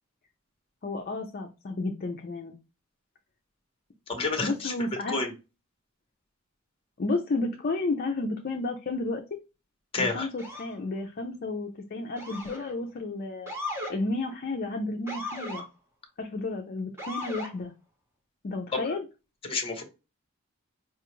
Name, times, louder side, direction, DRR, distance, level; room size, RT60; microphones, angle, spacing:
voice 1, 0.8-2.6 4.4-5.2 7.0-9.2 10.0-13.5 13.9-15.6 16.2-17.7 18.4-19.1, left 2 dB, 45° left, 3 dB, 0.5 m, -32 dB
voice 2, 4.1-4.7 5.1-5.3 9.9-10.3 18.7-18.8 19.4-19.8, left 3 dB, 25° left, 4 dB, 0.9 m, -29 dB
Motor vehicle (road) / Siren, 10.4-10.8 12.2-12.7 13.5-13.9 15.1-15.6 17.0-17.5, left 1 dB, 10° right, 1.0 m, -36 dB
4.8 x 2.4 x 3.0 m, 0.29 s
head